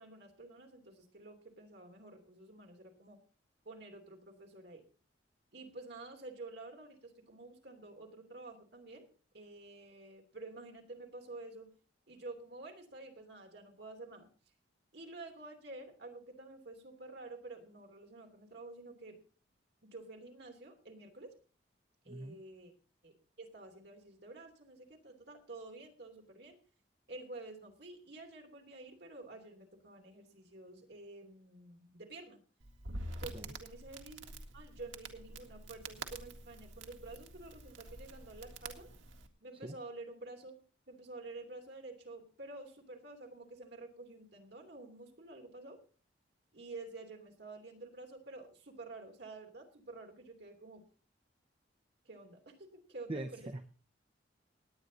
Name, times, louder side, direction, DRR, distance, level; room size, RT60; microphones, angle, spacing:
voice 1, 0.0-3.2 3.6-4.8 5.5-9.1 9.3-11.7 12.1-14.3 14.9-19.2 19.8-21.3 22.0-22.7 23.0-23.1 23.4-26.6 27.1-32.4 33.2-38.9 39.4-40.5 40.9-45.8 46.5-50.8 52.0-53.5, right 2 dB, 60° right, 3 dB, 3.0 m, -50 dB
voice 2, 22.1-22.4 33.3-33.5 39.6-39.8 53.1-53.6, right 2 dB, 30° right, 7 dB, 0.8 m, -42 dB
Crackle, 32.6-39.3, right 2 dB, 85° right, 1.9 m, -47 dB
19.0 x 9.4 x 4.0 m, 0.40 s
head